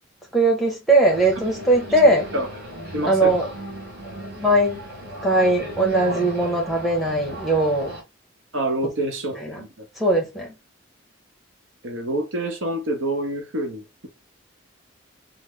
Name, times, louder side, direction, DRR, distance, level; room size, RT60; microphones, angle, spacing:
voice 1, 0.3-2.3 3.0-3.5 4.4-4.8 5.2-7.9 9.4-9.6 10.0-10.5, right 1 dB, ahead, 0.9 m, -20 dB
sound 1, 1.1-8.0, right 1 dB, 50° right, 1.7 m, -36 dB
voice 2, 2.9-3.3 8.5-9.9 11.8-14.1, right 1 dB, 80° right, 0.9 m, -27 dB
3.2 x 2.1 x 3.6 m
head